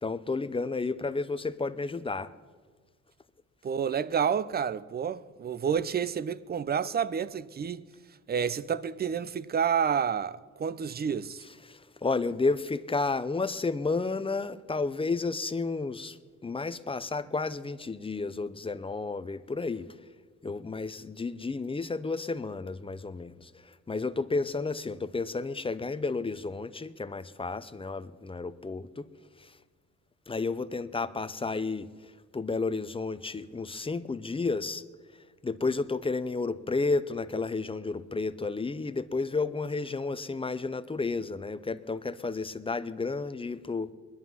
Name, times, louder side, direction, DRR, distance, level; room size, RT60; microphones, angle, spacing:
voice 1, 0.0-2.3 11.6-19.9 20.4-29.1 29.4-29.6 30.3-34.8 35.4-43.9, left 3 dB, 20° left, 0.7 m, -32 dB
voice 2, 3.6-7.9 8.3-11.4, right 7 dB, 30° right, 0.6 m, -29 dB
21.0 x 11.5 x 5.5 m
cardioid pair, 90°, 30 cm